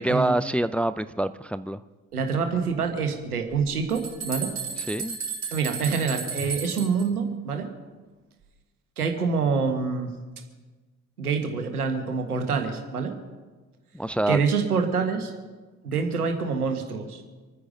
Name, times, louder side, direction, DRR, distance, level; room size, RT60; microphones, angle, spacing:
voice 1, 0.0-1.8 4.8-5.2 13.9-14.4, right 1 dB, 5° left, 14 dB, 0.5 m, -26 dB
voice 2, 2.1-4.5 5.5-7.7 9.0-10.1 11.2-13.1 14.3-15.3 15.8-17.2, right 5 dB, 85° right, 5 dB, 1.6 m, -26 dB
sound 1, 3.5-7.0, right 5 dB, 40° right, 4.6 m, -34 dB
26.0 x 9.8 x 5.2 m, 1.3 s
figure-of-eight pair, 50°, 43 cm